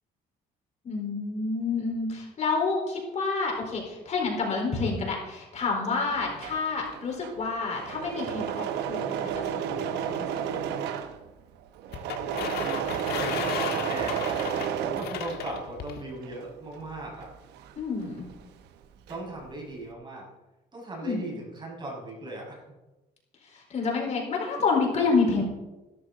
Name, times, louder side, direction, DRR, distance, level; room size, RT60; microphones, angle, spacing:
voice 1, 0.8-11.0 17.8-18.3 21.0-21.3 23.4-25.4, left 4 dB, 40° left, -1 dB, 4.4 m, -29 dB
Engine / Mechanisms, 6.2-15.8 16.1-18.5 18.7-19.4, right 9 dB, 80° right, 1.0 m, -32 dB
sound 1, 11.9-16.0, left 9 dB, 70° left, 1.5 m, -35 dB
voice 2, 13.2-17.3 19.1-20.3 20.7-22.6, right 2 dB, 30° right, -2 dB, 5.9 m, -38 dB
15.5 x 13.5 x 4.0 m, 1.1 s
cardioid pair, 110°, 17 cm